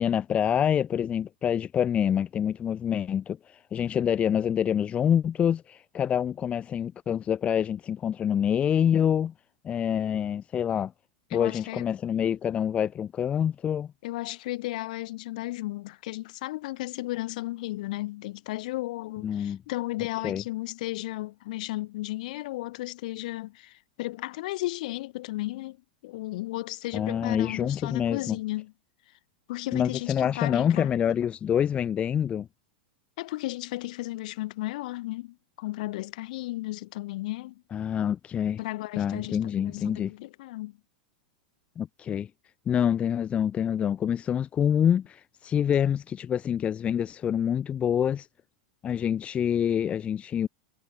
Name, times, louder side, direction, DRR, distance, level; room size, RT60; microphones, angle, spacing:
voice 1, 0.0-9.3 9.6-10.9 11.3-13.9 19.2-19.6 20.2-20.4 26.9-28.4 29.7-32.5 37.7-38.6 39.0-40.1 41.8-42.3 42.7-48.3 48.8-50.5, left 9 dB, 25° left, 0.7 m, -26 dB
voice 2, 11.3-11.8 14.0-25.8 26.0-28.7 29.5-30.9 33.2-37.6 38.6-40.8, left 18 dB, 60° left, 2.7 m, -34 dB
hypercardioid pair, 100°, 5 cm